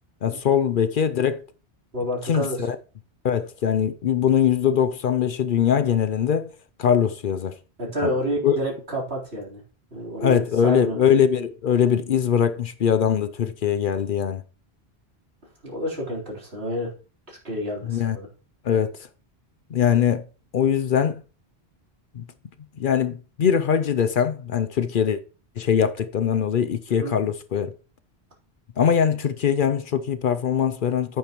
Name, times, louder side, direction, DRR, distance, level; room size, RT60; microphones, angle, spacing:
voice 1, 0.2-1.4 2.3-2.8 3.2-6.5 6.8-7.6 8.0-8.1 8.4-8.6 10.2-14.4 17.8-18.2 18.6-19.0 19.7-20.3 20.5-21.2 22.1-22.2 22.8-25.2 25.6-27.7 28.8-31.2, left 8 dB, 60° left, 0.7 m, -22 dB
voice 2, 1.9-2.7 7.8-9.6 9.9-11.0 15.6-16.9 17.3-18.3 26.9-27.1, equal, 75° right, 4.1 m, -29 dB
10.5 x 9.0 x 3.0 m
omnidirectional pair, 1.1 m